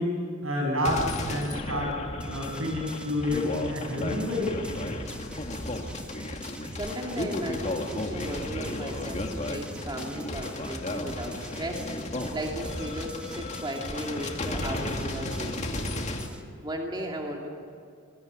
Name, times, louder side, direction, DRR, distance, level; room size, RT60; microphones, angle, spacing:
voice 1, 0.0-1.9 2.3-4.5, left 1 dB, 80° right, 2 dB, 7.4 m, -29 dB
sound 1, 0.8-16.3, left 1 dB, 35° left, 2.2 m, -34 dB
sound 2, 2.2-16.4, equal, 5° right, 1.5 m, -42 dB
voice 2, 6.7-16.1 16.6-17.5, equal, 20° right, 0 dB, 2.6 m, -36 dB
25.0 x 21.5 x 9.4 m, 2.3 s
head